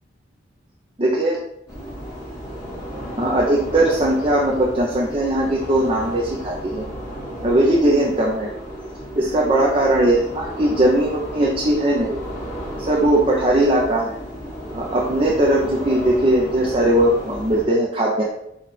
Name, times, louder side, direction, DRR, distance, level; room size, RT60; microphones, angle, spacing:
voice 1, 1.0-1.4 3.2-6.9 7.4-8.5 9.1-12.2 12.8-14.1 14.7-18.2, right 1 dB, 30° right, -3 dB, 0.5 m, -19 dB
sound 1, 1.7-17.7, equal, 15° left, 1.2 m, -33 dB
4.8 x 2.4 x 4.6 m, 0.78 s
head